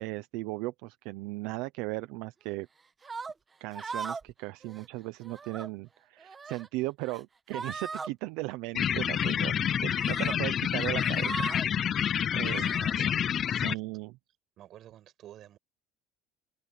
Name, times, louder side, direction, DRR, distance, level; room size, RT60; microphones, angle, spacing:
voice 1, 0.0-2.7 3.6-12.0 12.3-12.6 13.5-14.1, right 21 dB, 75° right, 0.8 m, -37 dB
sound 1, 3.0-3.3 3.7-4.3 4.6-4.9 5.2-5.7 6.2-6.7 7.0-7.2 7.5-8.1 9.2-9.3 10.0-10.4 10.8-11.7 12.4-12.9, right 4 dB, 15° right, 1.2 m, -39 dB
sound 2, 8.7-13.7, left 9 dB, 30° left, 0.4 m, -28 dB
voice 2, 12.4-13.2 13.4-13.8 14.6-15.6, right 12 dB, 40° right, 6.3 m, -50 dB
open air
cardioid pair, 170°, 0 cm